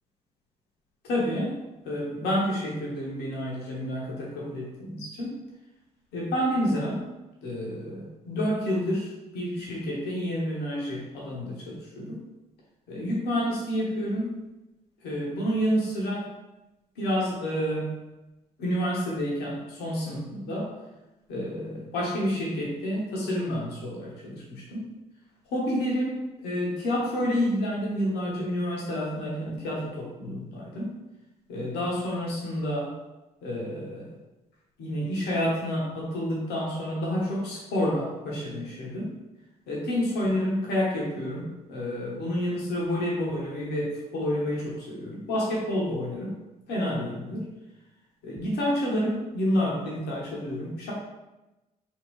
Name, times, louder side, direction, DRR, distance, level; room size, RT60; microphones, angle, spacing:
voice 1, 1.0-5.3 6.1-7.0 7.4-12.2 12.9-14.4 15.0-16.3 17.0-17.9 18.6-20.7 21.3-24.8 25.5-26.2 26.4-30.9 31.5-32.9 33.4-34.1 34.8-39.1 39.7-46.3 46.7-47.4 48.2-50.9, equal, 70° left, -4 dB, 0.7 m, -29 dB
2.8 x 2.6 x 3.0 m, 1.0 s
hypercardioid pair, 50°, 18 cm